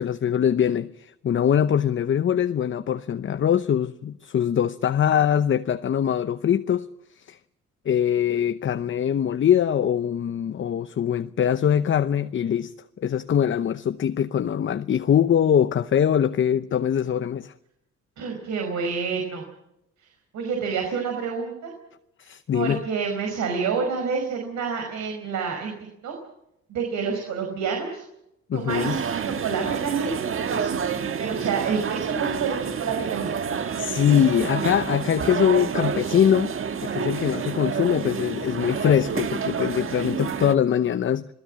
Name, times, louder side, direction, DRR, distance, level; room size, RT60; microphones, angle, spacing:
voice 1, 0.0-6.9 7.2-7.4 7.8-12.7 13.0-17.5 22.2-22.8 28.5-29.0 33.8-36.6 36.8-41.3, left 9 dB, 40° left, 0.8 m, -22 dB
voice 2, 18.2-19.4 20.3-21.7 22.5-25.7 26.0-26.2 26.7-28.0 28.5-30.8 31.2-33.3, right 5 dB, 75° right, 5.3 m, -28 dB
sound 1, 28.7-40.6, right 7 dB, 45° right, 1.5 m, -29 dB
26.5 x 18.5 x 7.6 m
cardioid pair, 95°, 29 cm